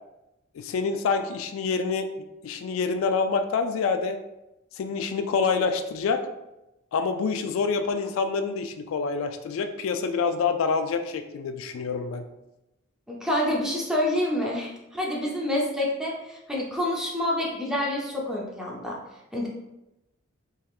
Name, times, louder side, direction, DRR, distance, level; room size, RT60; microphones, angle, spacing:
voice 1, 0.6-2.1 2.4-4.2 4.8-6.2 6.9-12.3, left 5 dB, 80° left, 7 dB, 0.3 m, -26 dB
voice 2, 13.1-19.0 19.3-19.5, left 1 dB, 5° right, -3 dB, 0.6 m, -27 dB
3.4 x 3.1 x 2.4 m, 0.93 s
head